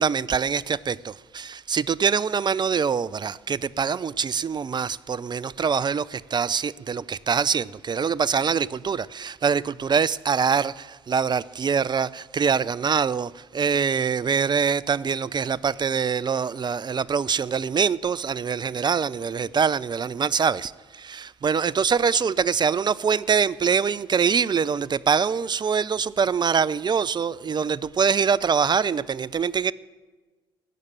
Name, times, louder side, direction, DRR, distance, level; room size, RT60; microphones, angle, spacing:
voice 1, 0.0-29.7, right 6 dB, 35° right, 0.5 m, -24 dB
17.5 x 6.5 x 8.8 m
hypercardioid pair, 45°, 13 cm